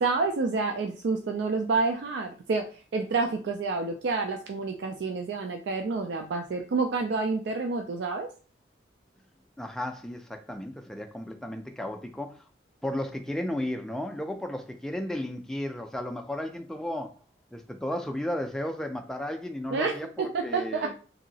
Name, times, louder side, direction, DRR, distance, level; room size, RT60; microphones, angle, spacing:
voice 1, 0.0-8.3 19.7-20.9, right 4 dB, 75° right, 4 dB, 0.4 m, -29 dB
voice 2, 9.6-12.4 12.8-17.1 17.5-20.9, left 1 dB, 5° left, 4 dB, 0.3 m, -34 dB
2.9 x 2.7 x 2.7 m, 0.38 s
head